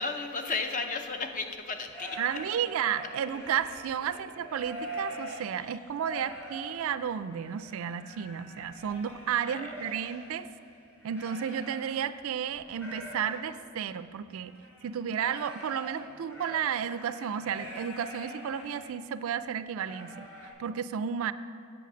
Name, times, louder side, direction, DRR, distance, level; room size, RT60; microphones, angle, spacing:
voice 1, 0.0-2.2 5.6-5.7 9.4-9.7, left 4 dB, 35° left, 6 dB, 0.6 m, -34 dB
sound 1, 1.7-12.2 12.5-18.9 19.3-19.4 19.8-20.5, equal, 10° left, 2.4 m, -45 dB
voice 2, 2.2-10.5 11.0-14.5 14.8-20.3 20.6-21.3, right 8 dB, 65° right, 14 dB, 0.3 m, -32 dB
8.3 x 8.0 x 6.1 m, 2.3 s
head